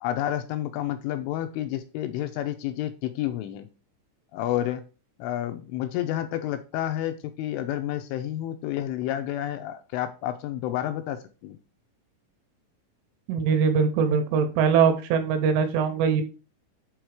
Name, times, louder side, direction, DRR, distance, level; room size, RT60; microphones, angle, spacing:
voice 1, 0.0-3.7 4.3-4.8 5.2-11.6, left 12 dB, 80° left, 7 dB, 2.9 m, -30 dB
voice 2, 13.3-16.2, right 6 dB, 80° right, 7 dB, 3.1 m, -22 dB
7.9 x 3.7 x 4.8 m, 0.33 s
omnidirectional pair, 5.9 m